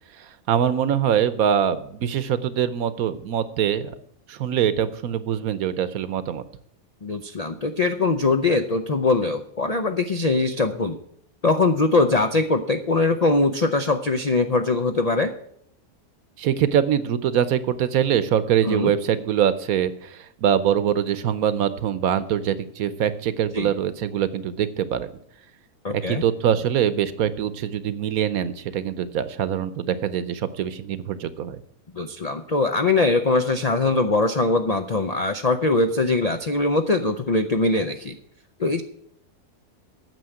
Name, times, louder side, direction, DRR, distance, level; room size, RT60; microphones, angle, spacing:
voice 1, 0.2-4.0 4.3-6.4 16.4-25.1 25.9-31.6, right 9 dB, 65° right, 14 dB, 1.1 m, -23 dB
voice 2, 7.0-11.0 11.4-15.3 18.6-18.9 23.5-23.7 25.8-26.2 31.9-38.2 38.6-38.8, left 3 dB, 80° left, 7 dB, 0.3 m, -22 dB
9.3 x 6.9 x 8.9 m, 0.69 s
omnidirectional pair, 1.7 m